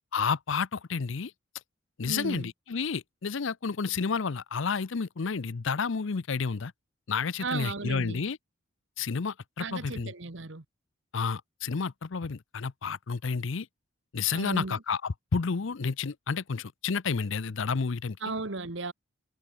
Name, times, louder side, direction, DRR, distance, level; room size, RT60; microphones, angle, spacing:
voice 1, 0.1-1.3 2.0-6.7 7.1-8.4 9.0-10.1 11.1-13.7 14.1-18.2, left 5 dB, 65° left, 0.6 m, -30 dB
voice 2, 2.1-2.5 7.4-8.3 9.6-10.6 14.3-14.8 18.2-18.9, right 3 dB, 60° right, 1.4 m, -35 dB
head